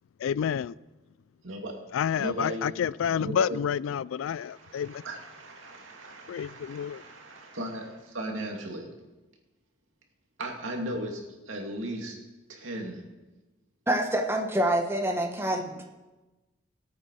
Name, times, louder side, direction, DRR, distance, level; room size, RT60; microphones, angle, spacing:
voice 1, 0.2-0.8 1.9-5.0 6.3-7.0, left 8 dB, 90° left, 0.3 m, -29 dB
voice 2, 1.4-1.8 2.2-2.7 3.2-3.6 4.4-8.9 10.4-12.2 12.5-13.0, right 1 dB, 85° right, 2.4 m, -37 dB
voice 3, 13.9-15.8, right 1 dB, 10° right, 1.2 m, -26 dB
19.5 x 8.7 x 4.8 m
head